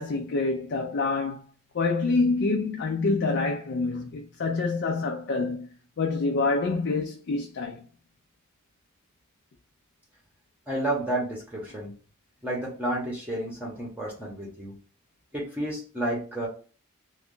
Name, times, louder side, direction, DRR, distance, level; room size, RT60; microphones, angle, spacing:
voice 1, 0.0-1.4 1.7-5.7 6.0-7.8, left 3 dB, 60° left, 0.5 m, -26 dB
voice 2, 10.7-11.9 12.4-14.7 15.3-16.5, right 1 dB, 10° right, 0.8 m, -31 dB
3.0 x 2.3 x 3.7 m
head